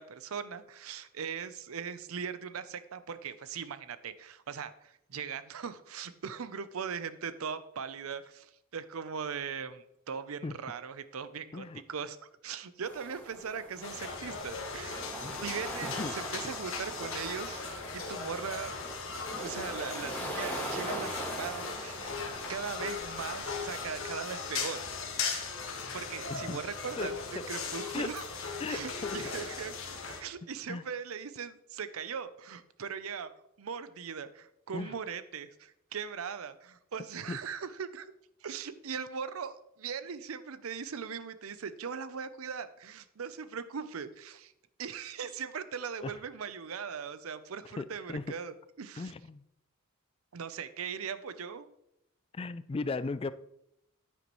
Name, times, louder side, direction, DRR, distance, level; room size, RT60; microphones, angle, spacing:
voice 1, 0.0-15.1 15.4-17.6 17.9-18.7 19.4-22.2 22.5-24.8 25.9-28.3 28.7-29.7 30.1-33.3 33.6-38.1 38.4-44.5 44.8-49.1 50.3-51.7, right 6 dB, 80° right, 13 dB, 0.6 m, -39 dB
sound 1, 12.8-23.8, equal, 10° left, 1.8 m, -42 dB
sound 2, 13.8-30.2, left 4 dB, 65° left, 1.5 m, -38 dB
voice 2, 15.8-16.1 26.3-26.6 27.0-27.1 27.4-27.5 27.9-28.1 28.6-29.2 30.7-30.8 34.7-35.0 37.3-37.4 46.0-46.1 47.8-48.2 49.0-49.4 52.3-53.3, left 3 dB, 25° left, 14 dB, 0.3 m, -36 dB
9.9 x 9.3 x 3.1 m, 0.80 s
head